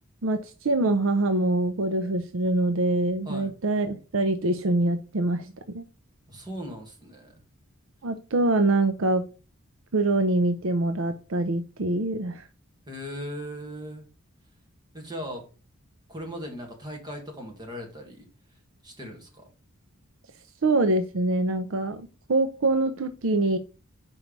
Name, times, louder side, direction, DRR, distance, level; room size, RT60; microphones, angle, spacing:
voice 1, 0.2-5.8 8.0-9.2 9.9-12.5 20.6-22.0 22.3-23.6, right 2 dB, 60° right, 9 dB, 0.6 m, -24 dB
voice 2, 6.3-7.3 12.9-14.0 14.9-15.4 16.1-18.3 18.8-19.4, equal, 20° right, 2 dB, 1.9 m, -38 dB
5.4 x 4.6 x 5.2 m, 0.35 s
head